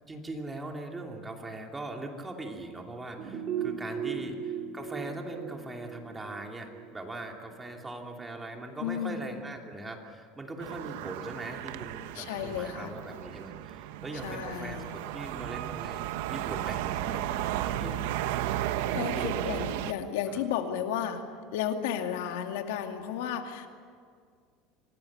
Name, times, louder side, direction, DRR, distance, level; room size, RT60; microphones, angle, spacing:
voice 1, 0.1-18.2 19.1-19.7 20.3-20.4, right 2 dB, 10° right, 2 dB, 2.7 m, -41 dB
sound 1, 3.1-8.3 8.6-8.7, right 7 dB, 40° right, 3.2 m, -38 dB
voice 2, 8.8-9.3 12.1-12.9 14.2-14.9 17.8-18.1 18.5-21.2 21.5-23.7, left 9 dB, 90° left, 5 dB, 2.3 m, -33 dB
sound 2, 10.6-19.9, right 13 dB, 80° right, 1.1 m, -34 dB
26.5 x 19.5 x 8.7 m, 2.1 s
cardioid pair, 150°, 0 cm